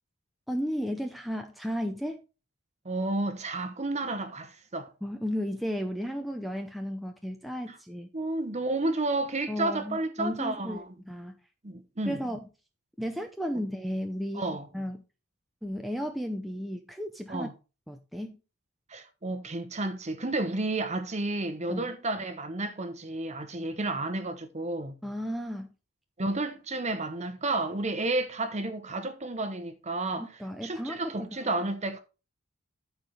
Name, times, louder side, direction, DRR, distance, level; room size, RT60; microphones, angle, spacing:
voice 1, 0.5-2.3 5.0-8.1 9.5-11.4 12.1-12.5 13.0-14.5 14.7-15.0 15.6-17.5 17.9-18.4 21.7-21.9 25.0-25.7 30.2-31.3, equal, ahead, 0.6 m, -34 dB
voice 2, 2.8-4.9 7.7-7.8 8.1-10.9 11.6-12.2 14.3-14.7 17.3-17.5 18.9-24.9 26.2-30.3 30.6-32.0, right 2 dB, 30° right, 1.0 m, -31 dB
13.0 x 4.7 x 3.4 m
head